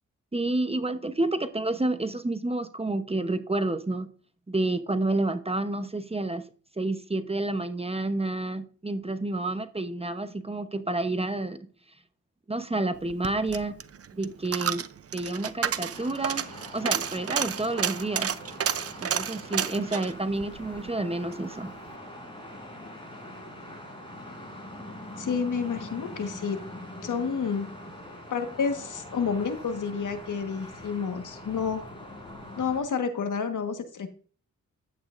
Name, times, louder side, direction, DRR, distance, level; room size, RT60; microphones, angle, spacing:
voice 1, 0.3-4.1 4.5-6.4 6.8-11.7 12.5-13.7 14.1-16.5 16.7-18.3 19.0-21.7, right 2 dB, 20° right, 0.9 m, -29 dB
Coin (dropping), 13.0-21.4 21.8-21.9, right 8 dB, 50° right, 0.6 m, -31 dB
sound 1, 15.9-32.8, left 1 dB, 15° left, 4.3 m, -43 dB
voice 2, 25.2-26.6 27.0-27.7 28.3-31.8 32.6-34.1, left 6 dB, 75° left, 1.5 m, -29 dB
11.0 x 8.7 x 2.6 m
cardioid pair, 75°, 31 cm